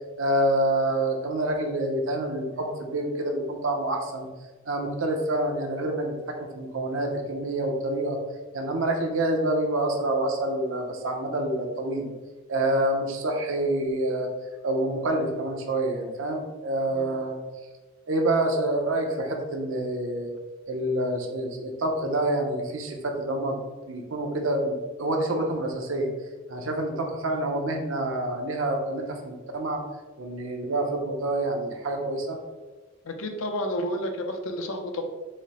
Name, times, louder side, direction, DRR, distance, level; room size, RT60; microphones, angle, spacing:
voice 1, 0.2-4.3 4.7-8.2 8.5-12.1 12.5-14.3 14.6-17.4 18.1-20.3 20.7-23.6 23.9-26.1 26.5-29.8 30.2-32.4, right 1 dB, 65° right, 2 dB, 0.7 m, -27 dB
voice 2, 33.0-35.1, equal, 70° left, 5 dB, 0.6 m, -31 dB
4.9 x 2.1 x 4.1 m, 1.2 s
head